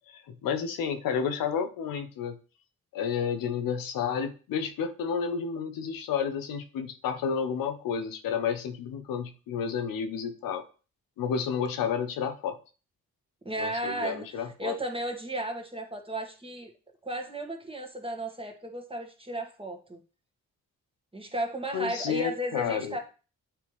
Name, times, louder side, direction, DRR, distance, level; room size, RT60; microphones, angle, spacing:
voice 1, 0.1-2.4 2.9-10.6 11.2-12.6 13.6-14.8 21.7-23.0, left 7 dB, 90° left, 7 dB, 0.7 m, -31 dB
voice 2, 13.4-16.7 17.0-20.0 21.1-23.0, right 1 dB, 15° right, 3 dB, 1.6 m, -34 dB
8.6 x 3.4 x 3.1 m, 0.35 s
supercardioid pair, 55°, 34 cm